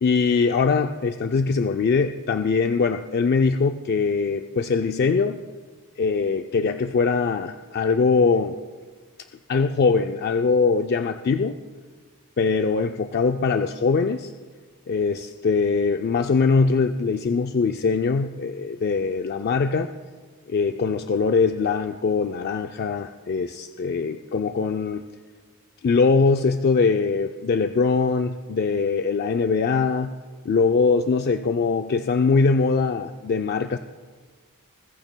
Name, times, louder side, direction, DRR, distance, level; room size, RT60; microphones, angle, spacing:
voice 1, 0.0-5.4 6.0-8.6 9.5-11.6 12.4-14.3 14.9-19.9 20.5-25.0 25.8-30.1 30.4-33.8, left 4 dB, 50° left, 7 dB, 0.4 m, -22 dB
20.5 x 14.5 x 2.2 m, 1.5 s
head